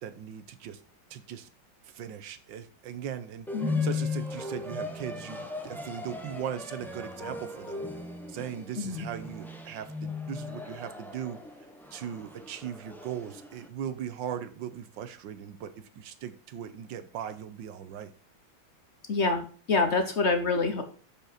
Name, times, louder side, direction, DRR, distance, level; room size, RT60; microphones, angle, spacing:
voice 1, 0.0-0.8 1.1-1.5 1.8-3.5 3.8-7.9 8.3-11.4 11.9-18.1, right 9 dB, 70° right, 11 dB, 1.5 m, -39 dB
sound 1, 3.5-13.7, left 3 dB, ahead, 0.4 m, -37 dB
voice 2, 19.1-20.8, left 3 dB, 55° left, 6 dB, 0.8 m, -26 dB
7.4 x 5.4 x 5.7 m, 0.40 s
omnidirectional pair, 2.2 m